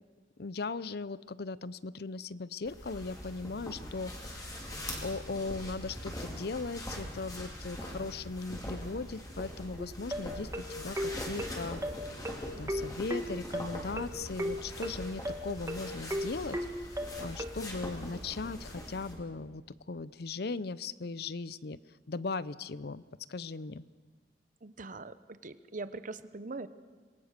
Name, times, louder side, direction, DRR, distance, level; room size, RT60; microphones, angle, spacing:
voice 1, 0.4-4.7 5.0-11.8 12.6-16.6 16.9-19.6 19.9-21.8 22.1-23.0 23.3-23.8, left 3 dB, 65° left, 18 dB, 0.6 m, -38 dB
sound 1, 2.6-19.1, equal, 20° left, 4.6 m, -42 dB
sound 2, 9.8-17.5, equal, 15° right, 1.5 m, -35 dB
voice 2, 24.6-26.7, right 3 dB, 50° right, 13 dB, 0.9 m, -42 dB
26.5 x 22.5 x 6.7 m, 1.4 s
head